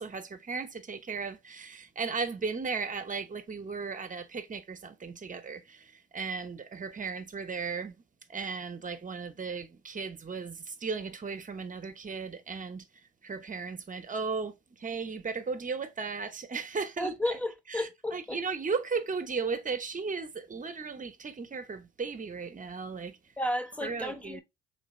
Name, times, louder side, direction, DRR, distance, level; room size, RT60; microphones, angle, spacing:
voice 1, 0.0-8.0 8.3-17.4 17.7-23.2 23.8-24.4, right 5 dB, 25° right, 0.9 m, -36 dB
voice 2, 17.0-18.4 23.4-24.4, left 1 dB, 5° left, 1.0 m, -33 dB
3.3 x 3.3 x 4.2 m
hypercardioid pair, 65°, 31 cm